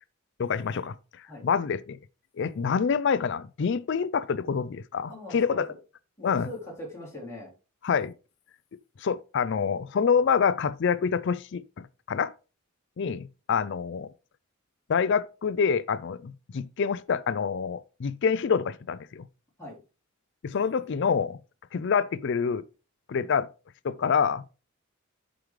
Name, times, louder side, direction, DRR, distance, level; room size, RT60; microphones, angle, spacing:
voice 1, 0.4-1.0 1.4-2.0 2.4-5.7 6.2-6.5 7.8-8.1 9.0-12.3 13.0-14.1 14.9-19.3 20.4-21.4 21.7-22.6 23.1-23.5 23.8-24.4, left 6 dB, 55° left, 0.4 m, -26 dB
voice 2, 5.1-5.6 6.2-7.5 19.6-19.8, left 1 dB, 15° left, 3.9 m, -41 dB
11.5 x 5.0 x 3.3 m
head